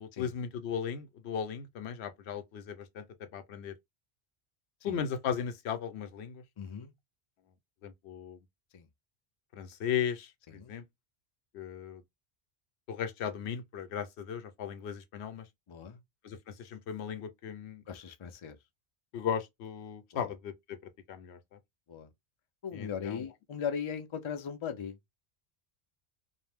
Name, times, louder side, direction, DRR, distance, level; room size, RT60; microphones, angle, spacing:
voice 1, 0.0-3.0 3.3-3.7 4.8-6.4 7.8-8.4 9.5-10.8 11.5-12.0 12.9-15.5 16.2-17.8 19.1-20.8 21.1-21.6 22.7-23.3, left 8 dB, 85° left, 0.9 m, -37 dB
voice 2, 6.6-6.9 8.7-8.9 10.5-10.7 15.7-16.0 17.9-18.6 20.1-20.3 21.9-22.1 22.6-25.0, left 7 dB, 45° left, 0.4 m, -38 dB
2.6 x 2.0 x 3.3 m
omnidirectional pair, 1.1 m